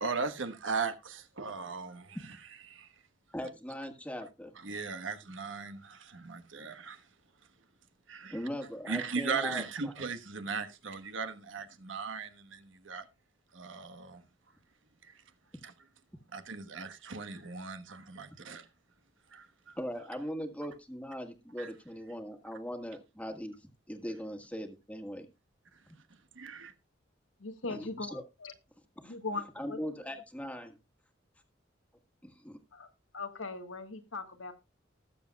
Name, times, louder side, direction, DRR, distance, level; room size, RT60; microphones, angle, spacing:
voice 1, 0.0-2.2 2.7-2.9 4.6-7.0 8.1-8.4 8.9-13.1 13.5-14.2 15.0-15.1 15.6-15.7 16.3-18.7 19.3-19.8 21.6-21.7 26.3-26.7, right 5 dB, 75° right, 1.2 m, -38 dB
voice 2, 3.3-4.5 8.3-9.9 19.8-23.5 23.9-25.3 25.9-26.0 27.7-28.2 29.0-29.2 29.6-30.8 32.2-32.6, equal, 5° left, 1.6 m, -40 dB
voice 3, 27.4-28.5 29.0-29.8 32.7-34.5, left 3 dB, 85° left, 1.6 m, -40 dB
19.0 x 7.3 x 2.3 m
head